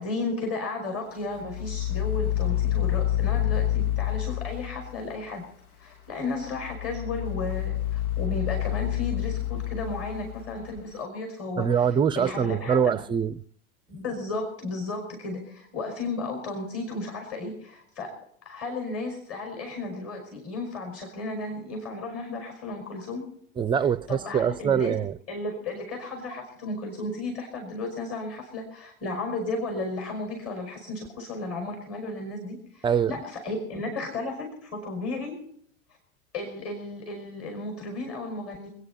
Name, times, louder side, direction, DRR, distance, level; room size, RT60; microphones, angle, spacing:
voice 1, 0.0-5.4 5.8-11.7 12.2-13.0 13.9-18.2 18.5-23.3 24.1-25.0 25.3-35.4 36.3-38.7, left 2 dB, 35° left, 5.3 m, -34 dB
sound 1, 1.4-5.1 6.4-10.8, left 12 dB, 85° left, 1.3 m, -28 dB
voice 2, 11.6-13.4 23.6-25.2 32.8-33.2, right 7 dB, 10° right, 0.5 m, -24 dB
27.5 x 9.7 x 4.3 m
hypercardioid pair, 95°, 42 cm